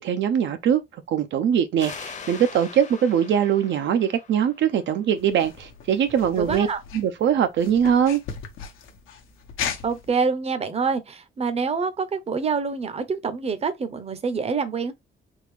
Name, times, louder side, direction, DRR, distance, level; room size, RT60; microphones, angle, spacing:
voice 1, 0.0-6.7 6.9-8.2, right 8 dB, 70° right, 0.6 m, -22 dB
sound 1, 1.8-5.2, left 5 dB, 35° left, 0.8 m, -42 dB
sound 2, 5.2-10.1, left 7 dB, 85° left, 0.9 m, -36 dB
voice 2, 6.4-6.8 9.8-14.9, right 5 dB, 30° right, 0.7 m, -26 dB
3.6 x 2.4 x 3.3 m
cardioid pair, 90°, 20 cm